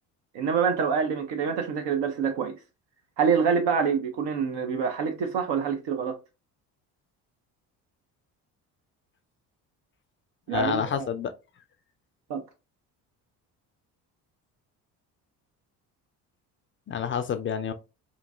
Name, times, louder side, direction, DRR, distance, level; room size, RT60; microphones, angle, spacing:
voice 1, 0.3-2.6 3.2-6.2 10.5-11.1 12.3-12.4, right 6 dB, 65° right, 0.7 m, -26 dB
voice 2, 10.5-11.3 16.9-17.7, left 8 dB, 30° left, 0.4 m, -28 dB
2.9 x 2.6 x 2.5 m
hypercardioid pair, 55°, 46 cm